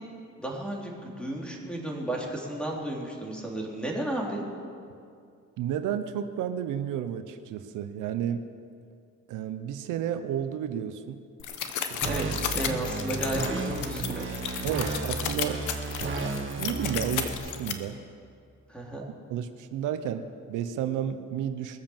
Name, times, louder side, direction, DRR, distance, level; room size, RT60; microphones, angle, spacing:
voice 1, 0.4-4.4 12.0-14.2 18.7-19.0, right 1 dB, 5° left, -2 dB, 3.6 m, -33 dB
voice 2, 5.6-8.5 9.3-11.2 11.9-12.0 14.6-15.6 16.6-18.0 19.0-21.8, right 9 dB, 90° right, 9 dB, 0.8 m, -32 dB
sound 1, 11.4-17.7, left 9 dB, 80° left, 1.2 m, -33 dB
sound 2, 12.0-17.3, right 4 dB, 40° right, 1.9 m, -33 dB
21.5 x 7.5 x 7.3 m, 2.3 s
cardioid pair, 90°, 30 cm